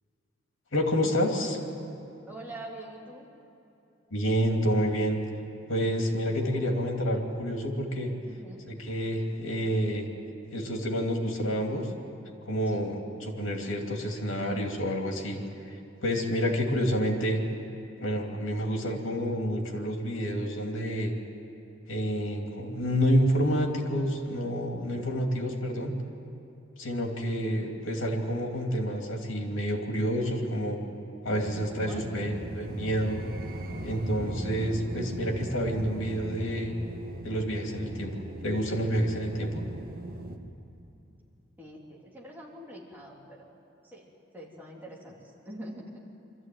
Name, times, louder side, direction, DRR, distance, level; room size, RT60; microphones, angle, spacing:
voice 1, 0.7-1.6 4.1-5.2 5.7-8.1 8.7-10.1 10.5-11.9 12.5-15.4 16.0-17.4 18.0-21.1 21.9-26.0 26.8-30.8 31.2-33.2 33.8-36.7 37.2-38.1 38.4-39.6, equal, 90° left, 2 dB, 2.8 m, -28 dB
voice 2, 2.3-3.3 8.3-8.6 12.7-12.8 31.7-32.4 41.6-43.5 43.8-45.1 45.4-46.0, right 1 dB, 10° right, -4 dB, 3.1 m, -44 dB
sound 1, 31.3-40.4, right 1 dB, 50° right, 1.4 m, -38 dB
23.5 x 14.0 x 9.4 m, 2.7 s
head